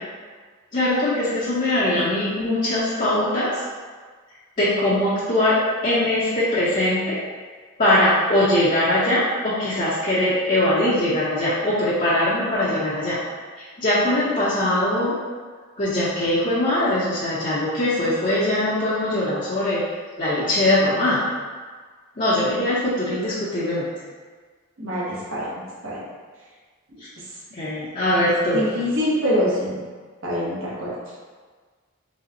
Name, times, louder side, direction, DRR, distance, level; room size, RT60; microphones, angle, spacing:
voice 1, 0.7-3.6 4.6-7.2 7.8-13.2 13.6-15.2 15.8-19.8 20.2-21.2 22.2-23.9 27.5-28.7, left 1 dB, 35° left, -9 dB, 0.7 m, -21 dB
voice 2, 24.8-26.0 28.5-29.8 30.2-30.9, equal, 70° right, -6 dB, 1.1 m, -25 dB
4.1 x 3.5 x 2.8 m, 1.5 s
head